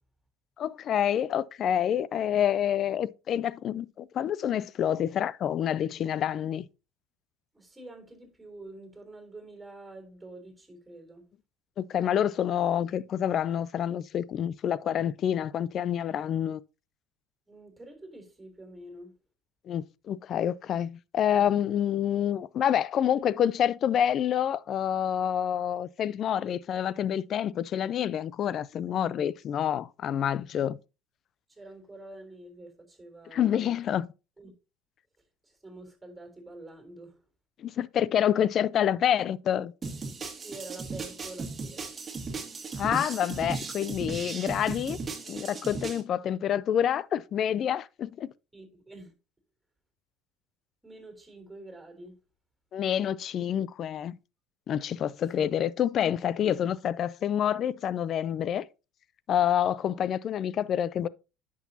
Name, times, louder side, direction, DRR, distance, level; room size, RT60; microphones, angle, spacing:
voice 1, 0.6-6.7 11.9-16.6 19.7-30.8 33.3-34.1 37.6-39.7 42.8-45.0 45.3-48.3 52.7-54.2 54.7-58.7 59.3-61.1, left 9 dB, 50° left, 0.4 m, -27 dB
voice 2, 7.5-11.2 17.5-19.2 31.5-33.8 34.4-34.5 35.4-37.2 40.4-41.9 48.5-49.1 50.8-52.2 55.4-55.5, right 2 dB, 10° right, 3.6 m, -47 dB
sound 1, 39.8-46.0, right 4 dB, 25° right, 1.9 m, -36 dB
10.0 x 6.2 x 2.8 m
supercardioid pair, 85°, 0 cm